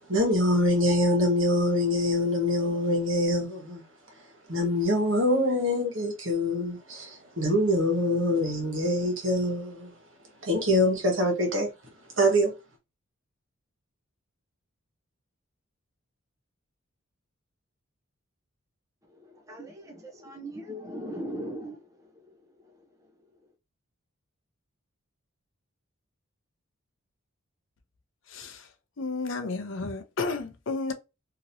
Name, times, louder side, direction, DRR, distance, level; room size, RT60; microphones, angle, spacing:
voice 1, 0.1-3.8 4.5-9.9 10.4-11.7 12.2-12.5, left 1 dB, 65° right, 1.3 m, -24 dB
voice 2, 19.1-23.1, equal, 15° right, 0.6 m, -40 dB
voice 3, 28.3-28.7 29.0-30.9, left 3 dB, 60° left, 0.6 m, -32 dB
2.9 x 2.8 x 2.6 m
head